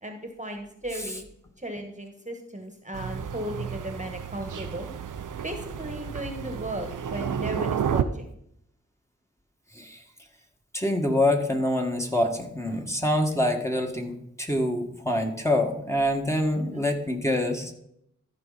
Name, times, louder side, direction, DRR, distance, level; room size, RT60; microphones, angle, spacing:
voice 1, 0.0-1.2 1.6-4.9 5.4-8.3 16.7-16.8, right 1 dB, 25° right, 4 dB, 1.4 m, -36 dB
Thunder, 2.9-8.0, right 8 dB, 80° right, 0.6 m, -31 dB
voice 2, 10.7-17.7, left 1 dB, 10° left, 2 dB, 1.8 m, -26 dB
14.0 x 5.0 x 4.2 m, 0.73 s
cardioid pair, 45°, 31 cm